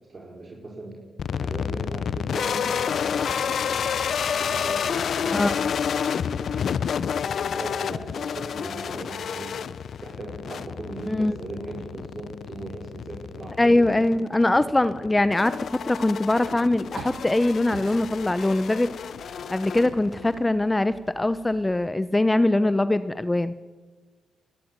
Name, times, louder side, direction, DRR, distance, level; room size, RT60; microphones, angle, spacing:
voice 1, 0.1-1.0 1.3-3.9 4.3-5.6 6.1-9.7 10.0-14.0 14.4-14.6, right 2 dB, 45° right, -1 dB, 4.9 m, -39 dB
sound 1, 1.2-20.4, left 7 dB, 65° left, 0.8 m, -30 dB
voice 2, 13.6-18.9 19.5-23.5, left 2 dB, 20° left, 14 dB, 1.0 m, -22 dB
sound 2, 15.5-21.9, right 5 dB, 70° right, 3.4 m, -47 dB
28.5 x 12.0 x 9.2 m, 1.3 s
supercardioid pair, 50°, 0 cm